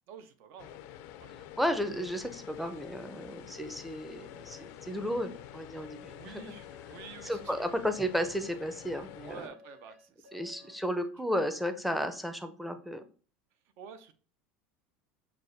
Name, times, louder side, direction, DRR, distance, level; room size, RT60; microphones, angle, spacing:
voice 1, 0.1-0.8 1.2-1.5 6.1-7.7 9.2-10.8 13.8-14.1, right 6 dB, 60° right, 10 dB, 0.6 m, -49 dB
sound 1, 0.6-9.5, left 12 dB, 65° left, 0.4 m, -48 dB
voice 2, 1.6-6.4 7.2-9.5 10.3-13.0, equal, ahead, 8 dB, 0.5 m, -33 dB
sound 2, 4.3-10.8, left 3 dB, 35° right, 2.1 m, -57 dB
6.0 x 2.2 x 2.6 m, 0.39 s
supercardioid pair, 100°, 5 cm